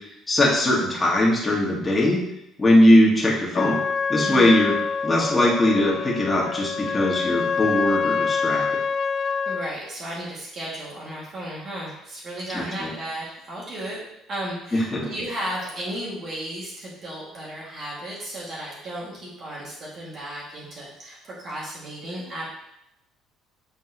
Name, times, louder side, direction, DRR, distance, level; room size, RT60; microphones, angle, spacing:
voice 1, 0.3-2.2 2.6-3.8 4.1-4.7 5.0-8.6 12.5-12.9 14.7-15.1, left 1 dB, 15° left, -4 dB, 1.9 m, -20 dB
Trumpet, 3.5-9.8, left 5 dB, 45° left, 0.4 m, -26 dB
voice 2, 4.2-4.6 9.5-14.0 14.3-22.5, right 1 dB, 50° right, -6 dB, 2.2 m, -34 dB
7.9 x 4.4 x 3.0 m, 0.81 s
cardioid pair, 105°, 0 cm